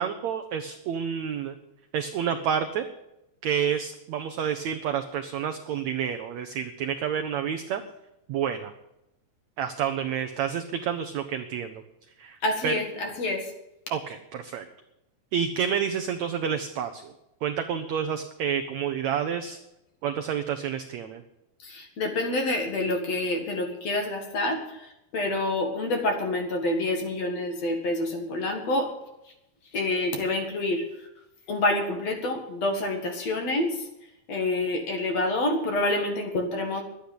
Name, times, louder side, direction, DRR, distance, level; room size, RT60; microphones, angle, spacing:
voice 1, 0.0-1.6 1.9-2.9 3.4-7.8 8.3-8.7 9.6-11.7 12.2-12.4 12.6-12.8 13.9-14.7 15.3-17.1 17.4-19.6 20.0-21.2, right 8 dB, 80° right, 6 dB, 1.6 m, -29 dB
voice 2, 12.4-13.5 21.6-28.9 29.7-30.8 31.5-33.9 34.3-36.8, left 2 dB, 50° left, 4 dB, 2.6 m, -27 dB
12.0 x 9.8 x 8.6 m, 0.88 s
omnidirectional pair, 4.3 m